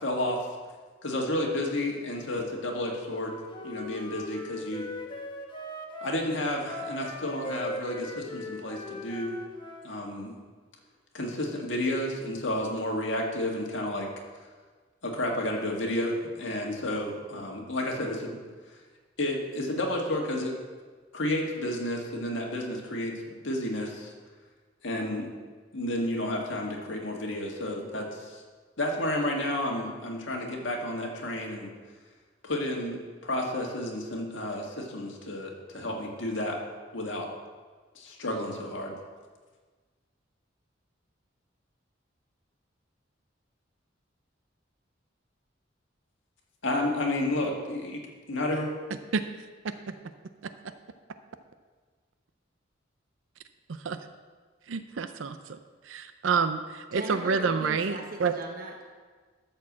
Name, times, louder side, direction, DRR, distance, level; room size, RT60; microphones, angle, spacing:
voice 1, 0.0-0.5 1.0-3.4 3.6-4.9 6.0-9.4 9.8-10.4 11.1-14.1 15.0-18.4 19.2-20.5 21.1-23.1 23.4-24.1 24.8-25.3 25.7-28.4 28.8-31.7 32.4-36.6 36.9-37.3 38.0-38.9 46.6-48.0 48.3-48.7, left 1 dB, 70° left, 0 dB, 1.9 m, -31 dB
Wind instrument woodwind instrument, 3.1-6.2 6.6-9.9, left 2 dB, 25° left, 1.1 m, -39 dB
voice 2, 54.7-55.6 55.9-58.3, right 5 dB, 75° right, 10 dB, 0.5 m, -28 dB
voice 3, 56.9-58.8, right 1 dB, 50° right, 1 dB, 1.0 m, -38 dB
13.0 x 4.6 x 7.3 m, 1.5 s
head